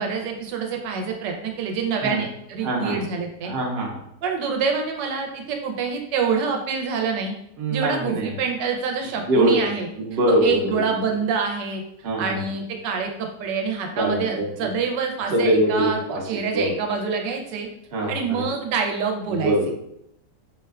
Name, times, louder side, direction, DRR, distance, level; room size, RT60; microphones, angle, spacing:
voice 1, 0.0-3.5 4.2-7.3 7.7-9.9 10.3-11.8 12.2-17.7 18.1-19.5, right 5 dB, 80° right, 2 dB, 1.2 m, -26 dB
voice 2, 2.6-2.9 3.4-4.0 7.6-8.3 9.3-9.6 10.0-10.8 12.0-12.4 14.0-14.7 15.3-16.7 17.9-18.4 19.3-19.7, right 1 dB, 60° right, -2 dB, 0.6 m, -23 dB
4.1 x 2.1 x 2.3 m, 0.76 s
omnidirectional pair, 1.9 m